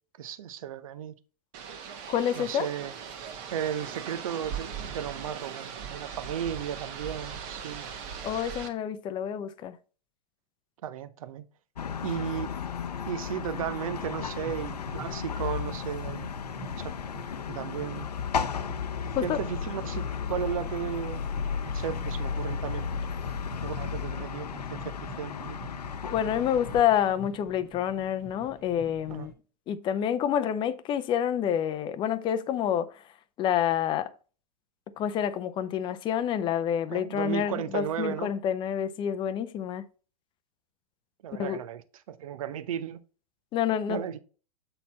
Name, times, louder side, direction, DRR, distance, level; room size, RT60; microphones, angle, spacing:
voice 1, 0.2-1.1 2.3-2.9 3.5-7.8 10.8-11.4 12.0-12.5 13.1-16.3 16.8-16.9 17.5-18.1 19.0-21.2 21.6-22.9 23.6-25.6 29.1-29.3 36.9-38.3 41.2-41.8 42.1-43.0 43.9-44.2, right 9 dB, 60° right, 0.8 m, -35 dB
sound 1, 1.5-8.7, right 7 dB, 40° right, 1.3 m, -39 dB
voice 2, 2.1-2.7 8.2-9.8 19.2-19.4 26.1-29.3 29.7-32.9 33.4-34.1 35.0-39.8 41.4-41.6 43.5-44.0, left 9 dB, 25° left, 0.6 m, -28 dB
sound 2, 11.8-26.8, left 6 dB, 80° left, 0.7 m, -34 dB
sound 3, 14.4-29.3, right 3 dB, ahead, 1.4 m, -49 dB
7.8 x 4.2 x 4.1 m
hypercardioid pair, 110°, 20 cm